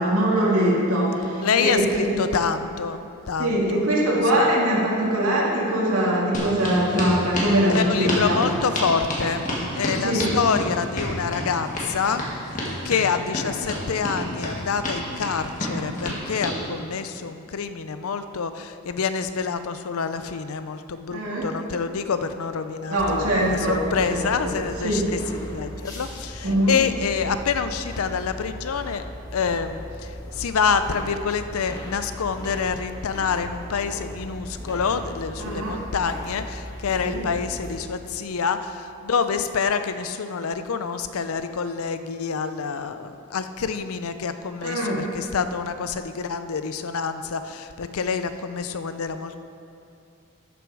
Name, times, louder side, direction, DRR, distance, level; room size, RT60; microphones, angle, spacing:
voice 1, 0.0-2.2 3.4-8.4 10.0-10.3 21.1-21.5 22.9-23.8 24.1-24.6 24.8-25.1 26.4-26.8 35.4-35.8 37.0-37.2 44.6-45.2, right 1 dB, 85° right, -3 dB, 2.1 m, -22 dB
voice 2, 1.4-3.9 4.3-4.5 7.7-9.5 9.7-12.2 12.8-29.0 29.3-49.4, left 6 dB, 80° left, 10 dB, 0.5 m, -27 dB
sound 1, 6.3-16.6, left 1 dB, 35° left, 1.8 m, -29 dB
sound 2, 23.0-37.8, equal, 15° left, 1.2 m, -37 dB
12.5 x 6.8 x 4.8 m, 2.6 s
head